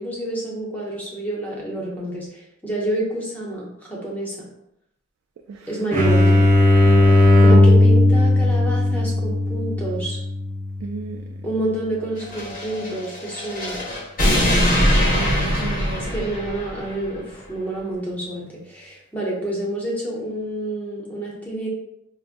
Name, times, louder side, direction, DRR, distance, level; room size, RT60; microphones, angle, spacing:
voice 1, 0.0-4.5 5.7-6.5 7.4-10.2 11.4-13.8 16.1-21.7, right 1 dB, 10° left, -4 dB, 0.7 m, -28 dB
sound 1, 5.9-11.4, left 2 dB, 40° right, 0.7 m, -16 dB
voice 2, 10.8-11.3 14.9-16.1, right 4 dB, 80° right, 3 dB, 0.3 m, -33 dB
sound 2, 12.2-17.0, equal, 45° left, 0.8 m, -22 dB
4.8 x 2.0 x 2.5 m, 0.80 s
head